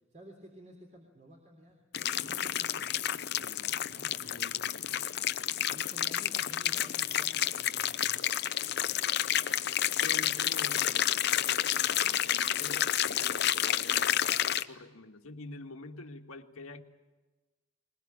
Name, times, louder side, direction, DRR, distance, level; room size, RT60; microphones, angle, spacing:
voice 1, 0.1-1.8 2.2-2.9 3.9-4.4 5.7-9.1, equal, 35° right, 2 dB, 3.4 m, -53 dB
sound 1, 1.9-14.6, left 11 dB, 50° left, 0.7 m, -30 dB
voice 2, 3.4-5.1 10.0-16.8, left 3 dB, 85° left, 5 dB, 1.8 m, -47 dB
21.5 x 21.0 x 8.8 m, 1.2 s
head